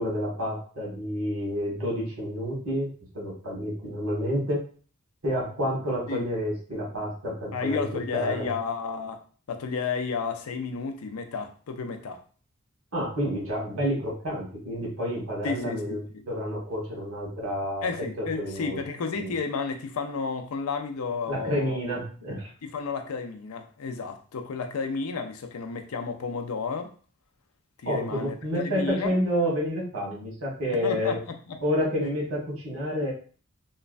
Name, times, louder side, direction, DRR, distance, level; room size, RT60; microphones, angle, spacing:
voice 1, 0.0-2.9 3.1-4.6 5.2-8.5 12.9-17.9 18.2-18.8 19.1-19.3 21.3-22.5 27.8-31.2 31.6-33.1, equal, 70° right, -4 dB, 1.4 m, -29 dB
voice 2, 7.5-9.2 9.5-12.2 15.4-16.3 17.8-21.8 22.6-26.9 27.8-29.1 30.8-31.6, left 5 dB, 80° left, 6 dB, 0.4 m, -32 dB
3.1 x 2.2 x 2.4 m, 0.41 s
head